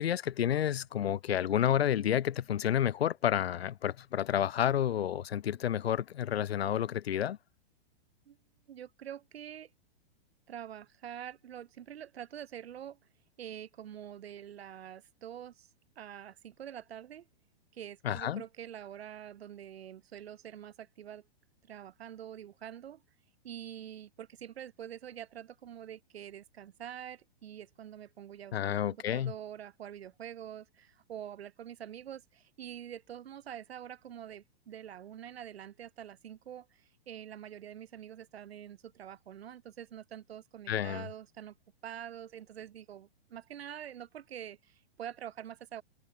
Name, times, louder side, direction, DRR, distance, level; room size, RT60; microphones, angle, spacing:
voice 1, 0.0-7.4 18.0-18.4 28.5-29.3 40.7-41.1, left 10 dB, 80° left, 1.5 m, -30 dB
voice 2, 8.7-9.7 10.5-13.0 13.4-15.7 15.9-17.3 17.7-21.3 21.6-23.0 23.4-41.6 41.8-45.8, right 10 dB, 90° right, 1.7 m, -46 dB
open air
hypercardioid pair, 175°, 30 cm